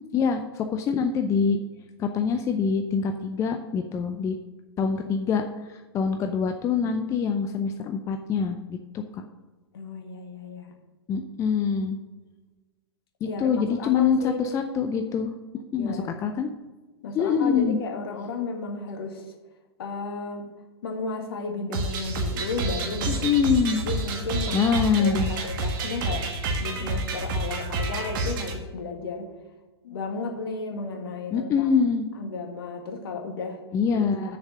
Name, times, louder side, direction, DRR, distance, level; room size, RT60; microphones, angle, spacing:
voice 1, 0.1-1.6 2.0-4.4 4.8-5.4 5.7-9.2 11.1-12.0 13.4-15.3 15.7-16.5 17.1-17.8 23.1-23.8 24.5-25.3 31.3-32.1 33.7-34.4, left 6 dB, 20° left, 6 dB, 0.6 m, -24 dB
voice 2, 9.7-10.7 13.2-14.4 15.8-16.1 17.0-19.4 19.8-20.5 20.8-23.3 23.7-24.6 25.0-26.3 26.6-29.3 29.8-31.7 32.2-33.6 34.0-34.4, left 4 dB, 60° left, 4 dB, 1.8 m, -34 dB
sound 1, 21.7-28.5, right 2 dB, 50° right, 1.6 m, -29 dB
7.3 x 6.8 x 6.6 m, 1.2 s
figure-of-eight pair, 105°, 14 cm